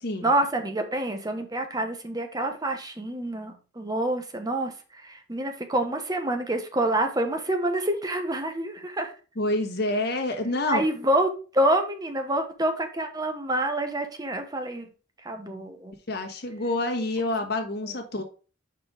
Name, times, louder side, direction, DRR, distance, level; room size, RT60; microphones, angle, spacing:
voice 1, 0.2-9.1 10.7-14.9 15.2-15.9 17.8-17.9, right 1 dB, 20° right, 5 dB, 1.0 m, -27 dB
voice 2, 9.4-10.8 16.1-18.2, left 2 dB, 60° left, 4 dB, 1.4 m, -27 dB
5.4 x 4.5 x 5.0 m, 0.36 s
head